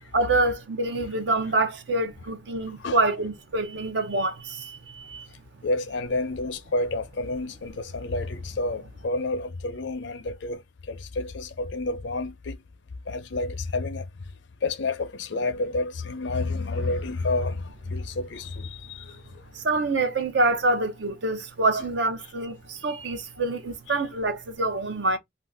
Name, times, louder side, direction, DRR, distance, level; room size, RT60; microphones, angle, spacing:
voice 1, 0.1-5.3 19.5-25.2, right 2 dB, 70° right, 0.6 m, -26 dB
voice 2, 5.6-10.6 10.9-12.6 13.1-14.1 14.6-19.2 23.9-24.0, left 2 dB, 75° left, 0.6 m, -29 dB
2.6 x 2.4 x 3.4 m
head